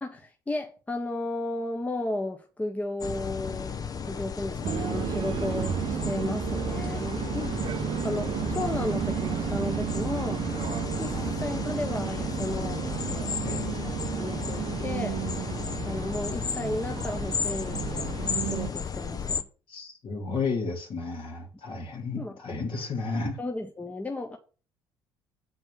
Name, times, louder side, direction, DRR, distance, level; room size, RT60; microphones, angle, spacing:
voice 1, 0.0-3.8 4.1-7.6 8.0-10.4 11.0-12.8 13.1-13.4 14.2-15.2 15.8-18.1 18.4-19.4 22.2-22.4 23.4-24.4, left 2 dB, 15° left, 1.1 m, -34 dB
sound 1, 3.0-19.4, left 6 dB, 35° left, 0.8 m, -34 dB
sound 2, 4.6-18.7, right 9 dB, 45° right, 0.7 m, -32 dB
voice 2, 13.4-13.8 19.7-23.4, left 4 dB, 50° left, 2.6 m, -32 dB
8.0 x 4.4 x 6.3 m
figure-of-eight pair, 50°, 11 cm